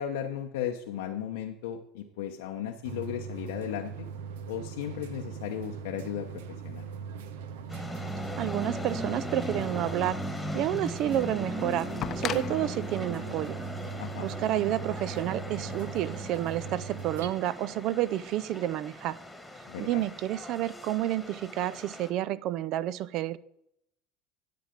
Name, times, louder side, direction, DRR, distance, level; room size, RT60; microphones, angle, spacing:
voice 1, 0.0-4.1 4.5-6.8 14.0-14.3 19.7-20.0, left 9 dB, 85° left, 3 dB, 0.8 m, -35 dB
sound 1, 2.8-17.3, right 6 dB, 85° right, 0.8 m, -40 dB
sound 2, 7.7-22.1, left 1 dB, 5° left, 1.5 m, -39 dB
voice 2, 8.4-10.2 10.5-11.9 12.2-13.6 14.2-19.2 19.8-23.4, right 13 dB, 60° right, 18 dB, 0.4 m, -30 dB
sound 3, 12.0-14.9 16.1-16.2, left 10 dB, 45° left, 0.6 m, -38 dB
10.5 x 7.7 x 5.1 m, 0.78 s
supercardioid pair, 105°, 0 cm